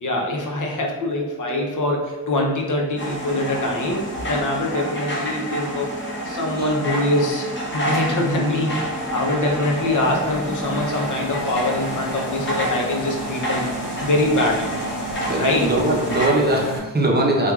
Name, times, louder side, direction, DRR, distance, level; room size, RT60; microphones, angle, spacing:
voice 1, 0.0-6.0 6.3-8.8 9.1-13.7 14.0-14.7 15.4-15.7, left 1 dB, 60° left, 0 dB, 0.7 m, -23 dB
sound 1, 3.0-16.3, equal, 30° left, 0.9 m, -29 dB
sound 2, 7.9-16.8, equal, ahead, 1.2 m, -33 dB
voice 2, 15.3-17.5, right 1 dB, 30° right, -1 dB, 0.7 m, -21 dB
4.4 x 2.3 x 2.4 m, 1.1 s
cardioid pair, 60°, 35 cm